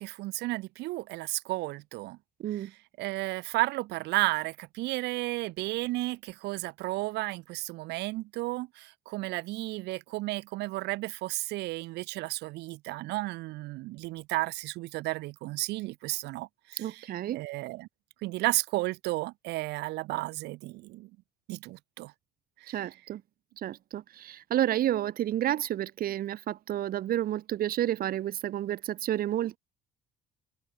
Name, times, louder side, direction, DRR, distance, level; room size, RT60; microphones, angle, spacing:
voice 1, 0.0-2.2 2.5-2.7 3.0-17.9 18.2-21.1 21.5-22.1 22.6-22.8, right 20 dB, 90° right, 2.3 m, -33 dB
voice 2, 2.4-2.7 16.8-17.4 22.7-23.2 23.6-29.6, right 12 dB, 60° right, 1.3 m, -30 dB
cardioid pair, 110°, 17 cm